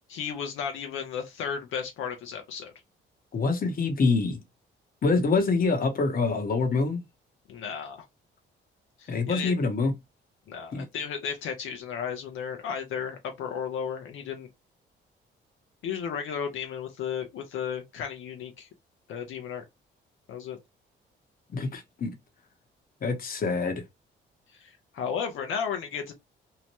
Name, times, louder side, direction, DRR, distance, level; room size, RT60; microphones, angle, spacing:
voice 1, 0.1-2.7 7.5-8.0 9.0-9.5 10.5-14.5 15.8-18.7 19.1-19.6 20.3-20.6 24.5-26.1, left 7 dB, 80° left, 0.8 m, -34 dB
voice 2, 3.3-4.4 5.0-7.0 9.1-9.9 10.7-10.8 21.5-22.1 23.0-23.8, left 4 dB, 45° left, 1.0 m, -25 dB
2.8 x 2.1 x 2.9 m
cardioid pair, 90°, 20 cm